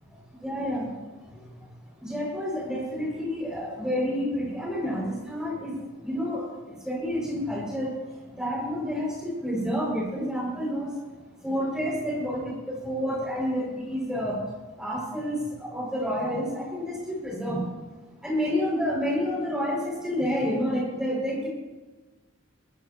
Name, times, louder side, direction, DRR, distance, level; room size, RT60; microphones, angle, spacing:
voice 1, 0.4-0.9 2.0-5.8 6.0-6.5 6.8-7.9 8.4-10.9 11.4-14.4 14.8-15.4 15.7-17.6 18.2-21.5, equal, 5° right, -4 dB, 6.9 m, -29 dB
23.5 x 19.0 x 3.2 m, 1.2 s
head